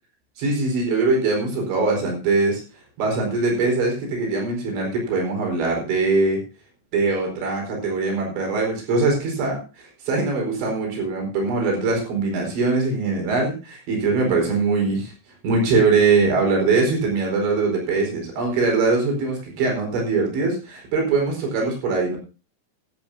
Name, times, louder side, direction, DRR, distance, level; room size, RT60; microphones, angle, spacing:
voice 1, 0.4-2.6 3.0-6.4 6.9-15.1 15.4-22.2, right 3 dB, 80° right, 1 dB, 6.9 m, -22 dB
25.5 x 8.5 x 2.7 m, 0.32 s
omnidirectional pair, 5.1 m